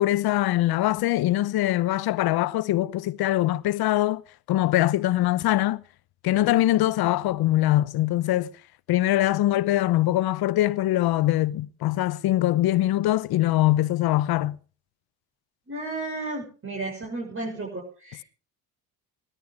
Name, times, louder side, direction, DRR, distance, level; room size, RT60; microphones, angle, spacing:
voice 1, 0.0-4.2 4.5-5.8 6.2-8.5 8.9-14.6, left 15 dB, 75° left, 1.0 m, -23 dB
voice 2, 15.7-18.2, right 2 dB, 35° right, 7.0 m, -33 dB
19.5 x 13.5 x 5.0 m
supercardioid pair, 80°, 38 cm